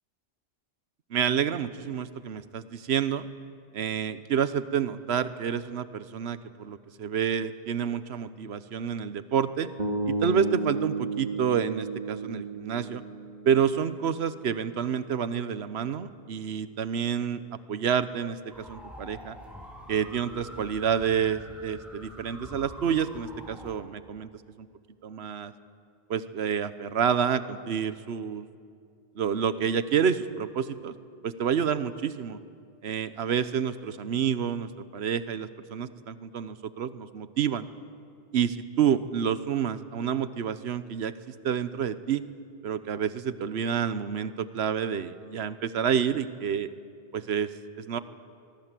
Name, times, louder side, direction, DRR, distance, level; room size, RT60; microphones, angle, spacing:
voice 1, 1.1-3.3 3.7-9.7 10.1-13.0 13.4-19.4 19.9-24.3 24.6-24.7 25.0-25.5 26.1-28.5 29.2-30.9 31.2-32.4 32.8-37.7 38.3-42.2 42.6-46.7 47.1-47.5 47.8-48.0, right 8 dB, 75° right, 13 dB, 1.1 m, -29 dB
sound 1, 9.8-13.9, right 2 dB, 40° right, 2.5 m, -32 dB
sound 2, 18.5-23.7, equal, ahead, 5.1 m, -45 dB
23.5 x 22.5 x 7.6 m, 2.3 s
omnidirectional pair, 1.1 m